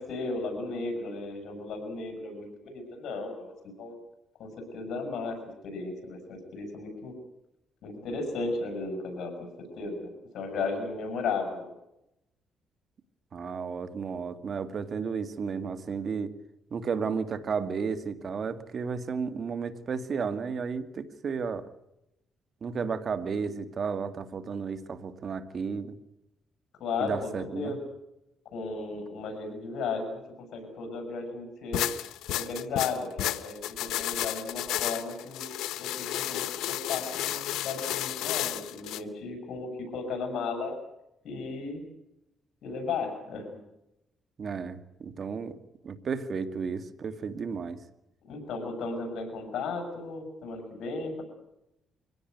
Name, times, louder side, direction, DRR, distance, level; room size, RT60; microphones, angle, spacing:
voice 1, 0.0-4.0 4.4-5.4 5.6-7.1 7.8-11.7 26.8-27.8 28.5-31.9 32.3-35.5 35.8-40.8 41.2-41.8 42.6-43.6 48.2-51.2, left 4 dB, 70° left, 5 dB, 7.4 m, -35 dB
voice 2, 13.3-16.3 16.7-21.7 22.6-26.0 27.0-27.7 44.4-45.6 45.8-47.8, right 5 dB, 50° right, 10 dB, 2.1 m, -33 dB
sound 1, 31.7-39.0, left 13 dB, 90° left, 1.1 m, -32 dB
24.5 x 17.0 x 9.5 m, 0.86 s
cardioid pair, 90°, 0 cm